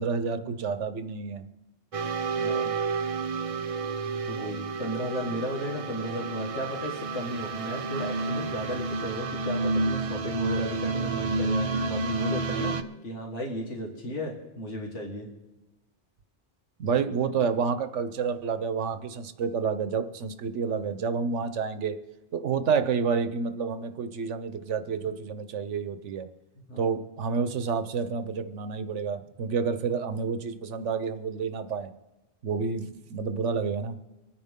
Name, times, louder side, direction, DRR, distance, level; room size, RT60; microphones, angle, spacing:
voice 1, 0.0-1.5 16.8-21.9 22.3-26.3 26.8-31.9 32.4-34.0, right 5 dB, 85° right, 10 dB, 1.2 m, -29 dB
voice 2, 0.5-0.9 2.3-2.7 4.3-12.8 13.0-15.3 20.6-20.9 24.9-25.1 26.7-27.0, equal, 85° left, 0 dB, 2.2 m, -35 dB
sound 1, 1.9-12.8, right 3 dB, 40° right, 0.5 m, -30 dB
25.5 x 9.6 x 3.7 m, 1.1 s
omnidirectional pair, 1.2 m